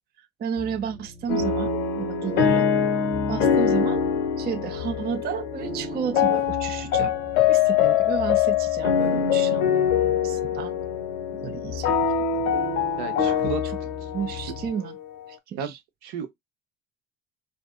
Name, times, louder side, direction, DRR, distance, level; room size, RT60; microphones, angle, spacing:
voice 1, 0.2-2.7 3.3-4.0 4.4-7.1 7.5-10.8 11.3-12.5 13.2-13.5 14.1-15.0 15.3-15.8, right 7 dB, 25° right, 0.4 m, -32 dB
sound 1, 0.6-14.7, left 3 dB, 90° right, 1.3 m, -39 dB
sound 2, 1.3-15.3, left 7 dB, 85° left, 0.8 m, -24 dB
voice 2, 13.0-13.9 14.3-14.4 15.6-15.7 16.0-16.3, right 7 dB, 65° right, 0.9 m, -33 dB
3.3 x 2.5 x 2.4 m
hypercardioid pair, 60°, 41 cm